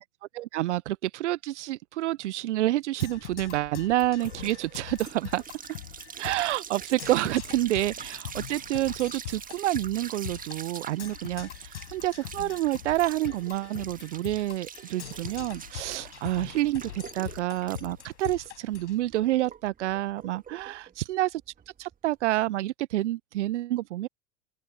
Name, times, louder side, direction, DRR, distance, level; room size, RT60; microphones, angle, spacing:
voice 1, 0.3-5.4 6.2-20.8 21.1-21.3 21.8-24.1, right 15 dB, 65° right, 1.0 m, -28 dB
Percussion, 3.0-19.0, left 13 dB, 65° left, 5.5 m, -43 dB
sound 1, 3.2-22.2, right 7 dB, 20° right, 1.6 m, -44 dB
open air
figure-of-eight pair, 80°, 38 cm